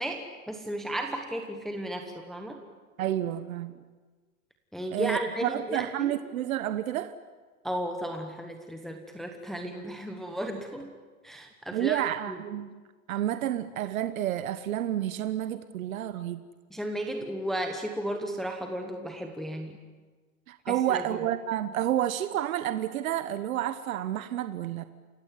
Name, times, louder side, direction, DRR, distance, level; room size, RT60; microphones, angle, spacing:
voice 1, 0.0-2.6 4.7-6.1 7.6-10.9 11.2-12.4 16.7-19.8 20.7-21.2, right 1 dB, ahead, 1.0 m, -34 dB
voice 2, 3.0-3.7 4.9-7.1 11.7-12.7 13.1-16.4 20.5-24.8, right 12 dB, 65° right, 1.3 m, -30 dB
29.0 x 16.5 x 9.6 m
supercardioid pair, 160°, 44 cm